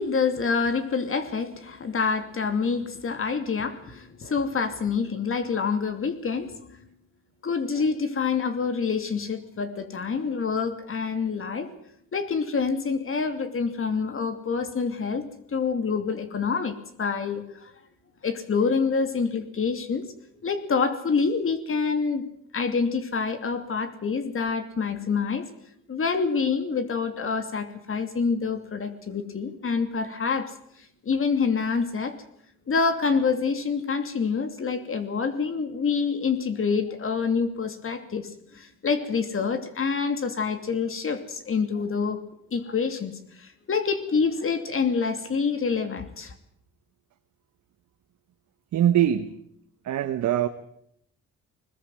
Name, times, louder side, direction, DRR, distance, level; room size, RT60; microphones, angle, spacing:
voice 1, 0.0-6.9 7.4-11.7 12.1-17.7 18.2-20.1 20.4-22.3 22.5-25.5 25.9-32.2 32.7-42.2 42.5-46.3, left 5 dB, 45° left, 2.9 m, -27 dB
voice 2, 48.7-49.4 49.8-50.5, right 11 dB, 70° right, 1.4 m, -22 dB
21.5 x 20.5 x 7.8 m
cardioid pair, 90°, 30 cm